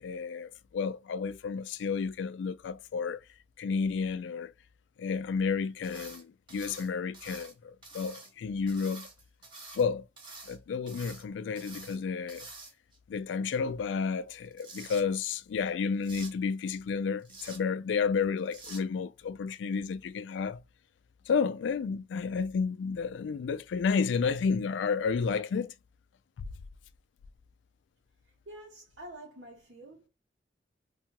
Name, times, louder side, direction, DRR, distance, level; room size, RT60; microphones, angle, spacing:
voice 1, 0.0-3.2 3.6-4.5 5.0-9.1 9.8-10.0 10.5-12.5 13.1-20.6 21.3-25.7, left 5 dB, 80° left, 0.3 m, -31 dB
sound 1, 5.8-6.2 6.5-7.5 7.8-8.3 8.7-9.8 10.2-10.6 10.9-11.2 11.6-12.0 12.3-13.0 14.3-15.0 16.0-16.3 17.2-17.6 18.5-18.8, right 3 dB, 25° right, 0.8 m, -47 dB
voice 2, 28.5-30.1, right 1 dB, 90° right, 0.9 m, -47 dB
2.7 x 2.3 x 2.8 m
head